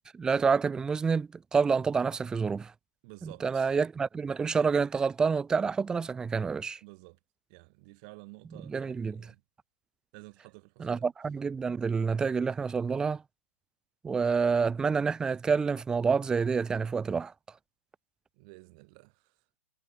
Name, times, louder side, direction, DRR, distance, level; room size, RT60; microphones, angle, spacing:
voice 1, 0.1-2.7 3.2-6.8 8.6-9.3 10.8-13.2 14.0-17.3, right 5 dB, 10° right, 2.5 m, -28 dB
voice 2, 3.0-3.7 6.8-7.2 7.5-9.4 10.1-11.1 18.4-19.1, right 30 dB, 35° right, 5.9 m, -51 dB
hypercardioid pair, 140°, 7 cm